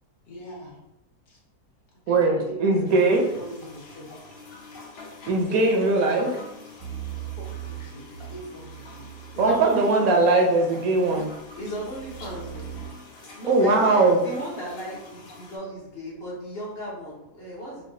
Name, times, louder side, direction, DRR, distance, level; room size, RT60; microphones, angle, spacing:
voice 1, 0.3-0.8 1.3-1.4 2.1-4.1 5.5-5.8 6.1-6.3 7.3-9.3 12.5-12.6, right 1 dB, 70° left, -3 dB, 1.5 m, -41 dB
voice 2, 2.1-3.2 5.3-6.3 9.4-11.3 13.4-14.2, right 3 dB, 70° right, 1 dB, 0.9 m, -20 dB
sound 1, 2.9-15.6, left 3 dB, 90° left, 1.4 m, -45 dB
sound 2, 6.8-9.8 11.2-12.9, right 11 dB, 35° right, 0.5 m, -39 dB
voice 3, 9.3-10.2 11.6-12.7 13.4-17.8, equal, 50° left, -4 dB, 0.8 m, -35 dB
4.6 x 2.2 x 2.6 m, 0.89 s
omnidirectional pair, 1.7 m